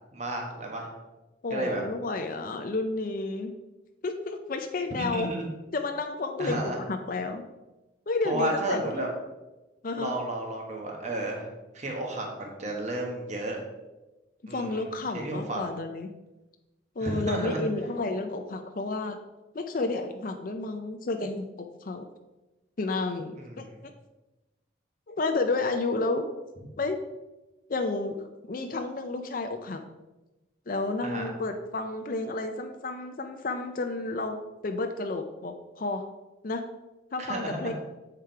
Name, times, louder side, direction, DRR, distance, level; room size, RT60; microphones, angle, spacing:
voice 1, 0.1-0.9 1.5-1.8 5.0-5.5 6.4-6.8 8.2-9.1 10.0-11.5 11.7-13.6 14.5-14.8 15.1-15.7 17.0-17.6 23.3-23.8 31.0-31.3 37.2-37.7, right 1 dB, 40° right, 1 dB, 1.3 m, -32 dB
voice 2, 1.4-3.5 4.0-5.3 5.7-7.4 8.1-9.1 9.8-10.1 14.5-16.1 17.0-19.2 19.5-22.0 22.8-23.9 25.1-26.2 26.8-27.0 27.7-29.8 30.7-34.4 34.6-36.1 36.4-36.6 37.1-37.7, left 3 dB, 50° left, 6 dB, 0.5 m, -31 dB
7.5 x 4.8 x 4.5 m, 1.1 s
head